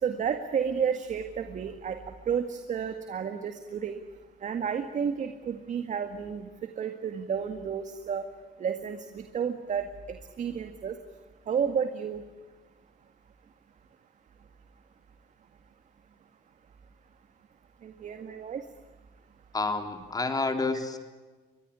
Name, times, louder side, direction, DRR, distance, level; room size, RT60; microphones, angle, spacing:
voice 1, 0.0-2.0 2.3-4.0 4.4-6.5 6.8-8.2 8.6-10.9 11.5-12.2 17.8-18.6, right 7 dB, 45° right, 8 dB, 1.9 m, -31 dB
voice 2, 19.5-21.0, left 3 dB, 20° left, 7 dB, 3.5 m, -29 dB
24.5 x 20.5 x 10.0 m, 1.3 s
cardioid pair, 110°, 17 cm